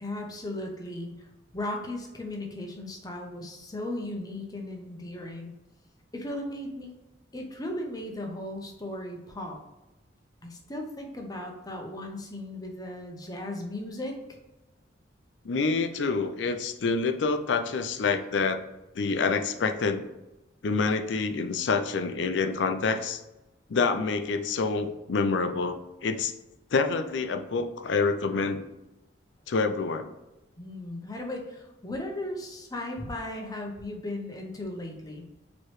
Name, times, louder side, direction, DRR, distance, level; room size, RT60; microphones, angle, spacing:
voice 1, 0.0-1.3 1.5-5.5 6.1-6.9 7.3-9.6 10.4-14.2 30.6-35.3, left 1 dB, 20° left, 2 dB, 0.7 m, -36 dB
voice 2, 15.4-18.6 19.0-20.0 20.6-23.2 23.7-26.3 26.7-28.6 29.5-30.1, left 4 dB, 70° left, 7 dB, 0.4 m, -27 dB
4.6 x 3.1 x 3.1 m, 1.0 s
head